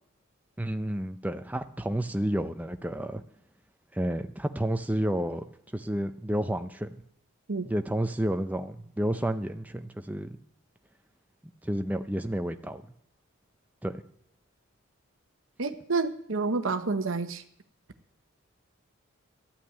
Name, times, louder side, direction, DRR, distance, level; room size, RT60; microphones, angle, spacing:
voice 1, 0.6-3.2 3.9-5.4 5.7-7.0 7.7-10.4 11.6-12.8 13.8-13.9, right 1 dB, 5° right, 7 dB, 0.5 m, -30 dB
voice 2, 15.6-17.4, right 3 dB, 65° right, 8 dB, 0.9 m, -29 dB
13.0 x 5.8 x 8.9 m, 0.69 s
head